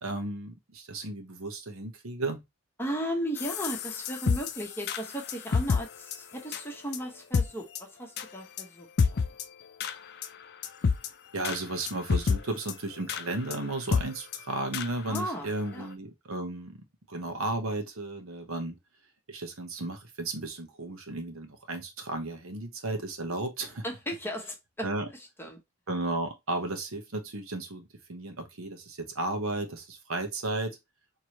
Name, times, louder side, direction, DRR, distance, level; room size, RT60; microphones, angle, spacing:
voice 1, 0.0-2.4 11.3-18.8 19.3-23.8 24.8-25.1 25.9-30.8, right 2 dB, 80° right, 1.0 m, -34 dB
voice 2, 2.8-9.2 15.1-15.9 23.8-24.9 25.1-25.6, equal, 10° left, 1.0 m, -36 dB
sound 1, 3.4-5.8 6.1-6.2 6.5-6.6 6.9-7.0 7.3-7.4 7.7-7.8 8.2-8.3 8.6-8.7 9.0-9.4 9.8-9.9 10.2-10.3 10.6-11.1 11.4-11.6 11.9-12.4 12.7-12.8 13.1-13.2 13.5-13.6 13.9-14.0 14.3-14.4 14.7-14.9 15.1-15.2 15.6-15.7, left 5 dB, 50° left, 0.4 m, -27 dB
4.7 x 3.0 x 2.9 m
head